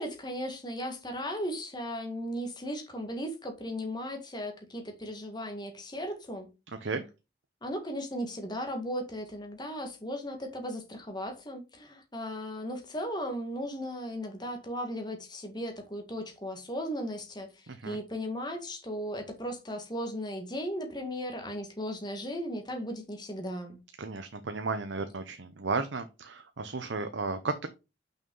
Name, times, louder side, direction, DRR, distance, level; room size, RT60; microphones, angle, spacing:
voice 1, 0.0-6.5 7.6-23.8, equal, 25° left, 1.9 m, -36 dB
voice 2, 17.7-18.0 24.0-27.7, right 3 dB, 80° right, 0.8 m, -34 dB
6.0 x 5.5 x 5.5 m
head